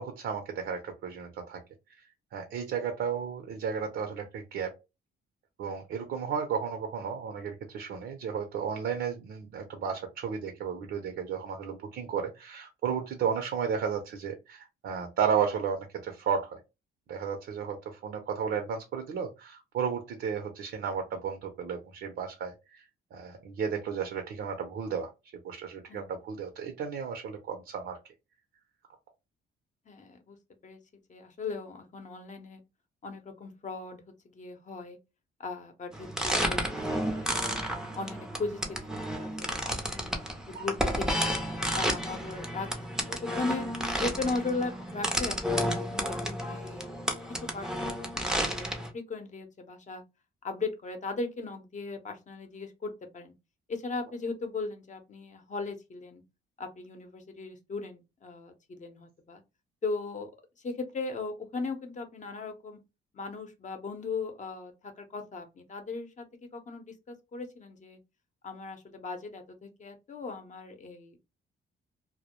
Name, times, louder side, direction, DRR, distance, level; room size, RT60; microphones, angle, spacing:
voice 1, 0.0-1.6 2.0-2.1 2.3-4.7 5.6-16.6 17.1-22.8 23.1-25.1 25.4-28.0 40.5-40.7, right 7 dB, 70° right, 5 dB, 0.6 m, -33 dB
voice 2, 29.9-30.4 30.6-30.8 31.1-32.6 33.0-35.0 35.4-37.6 37.9-41.3 41.7-42.7 43.1-43.7 44.0-46.9 47.3-48.7 48.9-50.0 50.4-53.3 53.7-56.2 56.6-59.4 59.8-60.3 60.6-62.8 63.1-68.0 68.4-71.2, left 3 dB, 40° left, 6 dB, 0.7 m, -38 dB
sound 1, 35.9-48.9, equal, 5° right, 0.5 m, -32 dB
2.2 x 2.0 x 2.9 m, 0.25 s
cardioid pair, 90°, 20 cm